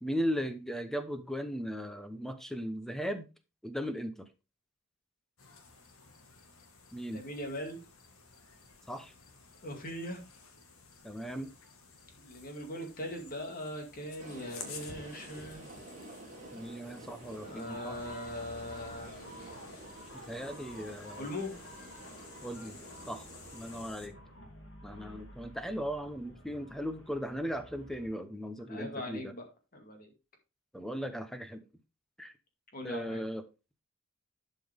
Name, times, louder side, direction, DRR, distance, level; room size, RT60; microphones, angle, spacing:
voice 1, 0.0-3.3 3.6-4.3 6.9-7.2 8.9-9.1 11.0-11.5 16.5-18.0 20.3-21.3 22.4-22.8 23.1-23.2 23.5-24.2 24.8-29.3 30.7-31.6 32.2-32.3 32.8-33.4, equal, ahead, 9 dB, 0.9 m, -37 dB
sound 1, 5.4-24.1, left 5 dB, 85° left, 1.8 m, -53 dB
voice 2, 7.1-7.8 9.6-10.2 12.2-15.7 17.4-19.6 21.2-21.5 28.7-29.5 29.7-30.1 32.7-33.2, left 1 dB, 45° left, 3 dB, 2.3 m, -40 dB
sound 2, 14.2-23.9, right 2 dB, 35° right, 2.5 m, -51 dB
sound 3, 17.7-28.1, equal, 60° left, 2.8 m, -51 dB
11.5 x 5.4 x 3.6 m, 0.28 s
head